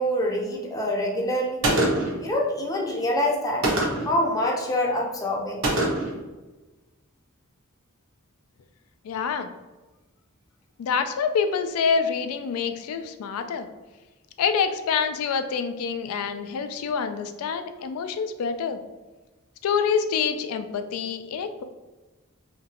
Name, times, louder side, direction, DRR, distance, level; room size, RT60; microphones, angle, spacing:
voice 1, 0.0-1.6 2.2-3.7 4.0-5.6, left 1 dB, 15° left, -2 dB, 0.5 m, -25 dB
Gunshot gunfire, 1.6-2.2 3.6-4.2 5.6-6.2, right 1 dB, 70° right, 0.8 m, -23 dB
voice 2, 9.0-9.5 10.8-13.7 14.4-18.8 19.6-21.6, left 6 dB, 75° left, 8 dB, 0.3 m, -26 dB
2.9 x 2.5 x 2.7 m, 1.2 s
head